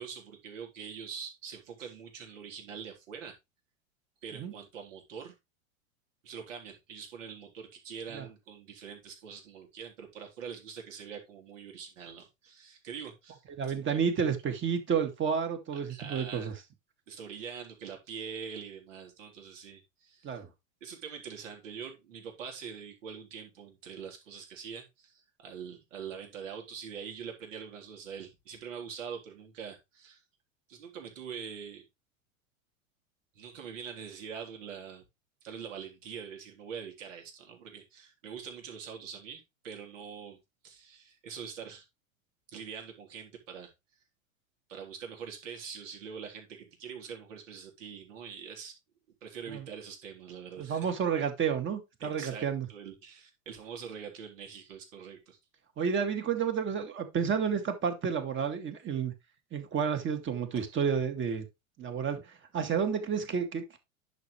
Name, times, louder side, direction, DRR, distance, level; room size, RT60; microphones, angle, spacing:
voice 1, 0.0-3.4 4.2-5.4 6.2-14.0 15.7-16.5 17.1-20.4 20.8-30.2 30.7-31.9 33.4-35.0 35.4-40.4 40.6-41.9 42.5-43.7 44.7-48.8 49.2-50.8 52.0-55.4, right 7 dB, 65° right, 3.7 m, -44 dB
voice 2, 13.6-16.5 20.2-20.5 49.5-49.7 50.6-52.7 55.8-59.1 59.5-61.5 61.8-63.8, right 7 dB, 30° right, 2.2 m, -30 dB
10.5 x 6.4 x 3.2 m
hypercardioid pair, 95°, 41 cm